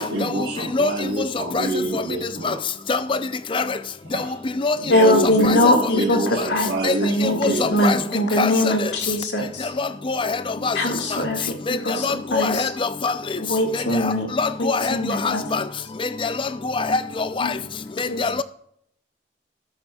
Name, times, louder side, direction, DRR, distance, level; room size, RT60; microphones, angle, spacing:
voice 1, 0.0-2.6 4.0-4.5 4.7-8.1 12.2-12.8, right 1 dB, 65° right, 1.4 m, -27 dB
voice 2, 4.9-6.7 7.0-9.7 10.7-12.7 13.4-14.3 14.6-15.4 17.4-17.5 18.1-18.2, left 1 dB, 75° left, 1.9 m, -22 dB
voice 3, 7.4-8.0 8.4-8.5 9.8-10.4 10.6-10.8 11.7-11.8 12.0-12.7 13.0-13.1 14.4-15.0 15.2-15.6 16.2-16.3 16.8-17.0 17.4-17.5 18.2-18.4, left 4 dB, 30° left, 0.5 m, -22 dB
14.0 x 7.9 x 2.3 m
head